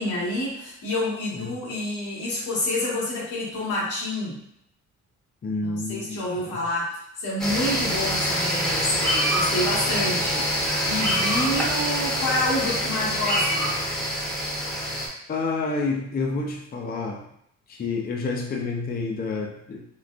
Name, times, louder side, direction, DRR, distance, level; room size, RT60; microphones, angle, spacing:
voice 1, 0.0-4.4 5.6-13.7, left 1 dB, 85° left, -6 dB, 1.3 m, -28 dB
voice 2, 5.4-6.6 15.3-17.3 17.7-19.8, left 3 dB, 30° left, 1 dB, 0.4 m, -29 dB
sound 1, 7.4-15.1, equal, ahead, 0.9 m, -25 dB
3.7 x 2.2 x 2.4 m, 0.72 s
cardioid pair, 90°, 30 cm